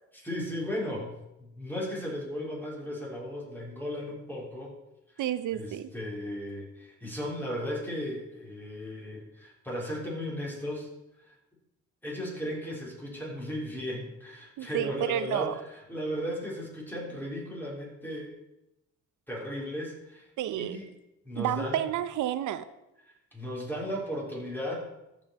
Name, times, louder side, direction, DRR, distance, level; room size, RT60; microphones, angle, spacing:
voice 1, 0.1-4.7 5.5-10.9 11.2-11.3 12.0-18.3 19.3-20.9 21.2-21.8 23.3-24.8, equal, 5° left, -3 dB, 3.8 m, -36 dB
voice 2, 5.2-5.9 14.6-15.5 20.4-20.8 21.3-22.6, right 11 dB, 80° right, 13 dB, 0.7 m, -30 dB
14.0 x 5.4 x 4.7 m, 0.90 s
cardioid pair, 90°, 30 cm